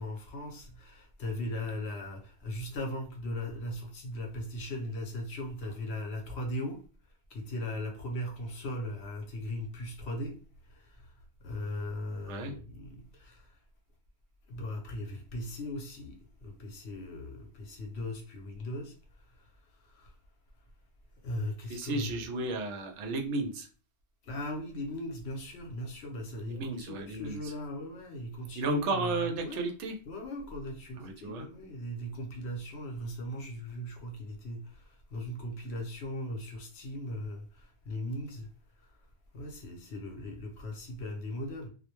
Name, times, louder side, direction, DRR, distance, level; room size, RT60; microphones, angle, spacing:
voice 1, 0.0-6.8 7.3-10.4 10.7-11.1 11.4-13.4 14.5-18.9 19.8-20.1 21.2-22.5 24.2-29.7 30.0-34.8 35.1-38.5 39.3-41.7, left 1 dB, 70° left, 0.9 m, -38 dB
voice 2, 21.7-23.7 26.5-27.5 28.5-29.9 30.9-31.5, right 2 dB, 85° right, 0.9 m, -33 dB
2.3 x 2.1 x 2.9 m
omnidirectional pair, 1.2 m